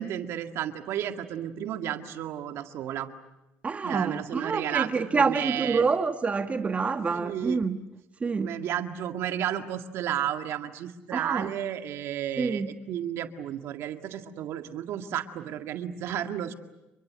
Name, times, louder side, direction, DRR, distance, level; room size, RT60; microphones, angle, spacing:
voice 1, 0.0-3.1 3.8-5.8 7.1-7.6 8.4-16.5, right 10 dB, 70° right, 6 dB, 2.0 m, -32 dB
voice 2, 3.6-7.8 8.2-8.6 11.1-11.5 12.4-12.7, right 4 dB, 30° right, 8 dB, 1.3 m, -27 dB
29.5 x 23.5 x 7.6 m, 0.95 s
supercardioid pair, 85°, 5 cm